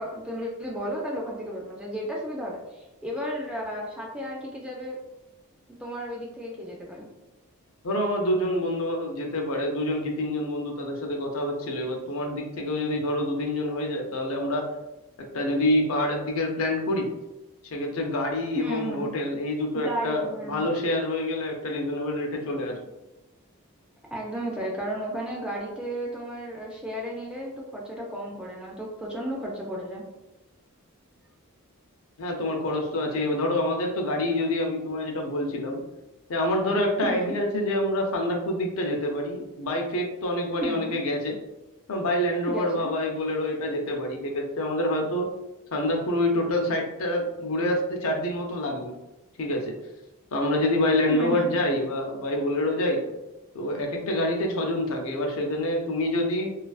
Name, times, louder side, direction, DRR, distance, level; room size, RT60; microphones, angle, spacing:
voice 1, 0.0-5.0 5.8-7.1 18.6-19.1 19.7-20.7 24.1-30.0 37.0-37.4 40.6-41.0 42.5-42.9 51.1-51.5, equal, 5° right, -3 dB, 0.3 m, -33 dB
voice 2, 7.8-14.7 15.3-17.1 17.6-22.8 32.2-35.8 36.3-41.4 41.9-45.3 45.7-48.9 49.4-49.7 50.3-53.0 53.5-56.5, left 1 dB, 65° left, 1 dB, 0.5 m, -27 dB
2.4 x 2.3 x 2.3 m, 1.0 s
head